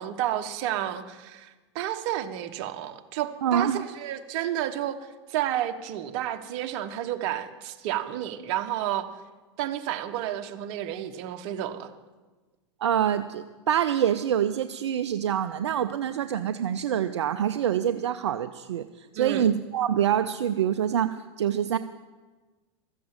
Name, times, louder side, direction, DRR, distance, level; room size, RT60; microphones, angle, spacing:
voice 1, 0.0-5.0 5.3-9.1 9.6-11.9 19.2-19.5, right 12 dB, 55° right, 7 dB, 1.1 m, -31 dB
voice 2, 3.4-3.8 12.8-21.8, right 9 dB, 75° right, 10 dB, 0.5 m, -26 dB
13.5 x 7.7 x 8.8 m, 1.3 s
hypercardioid pair, 100°, 15 cm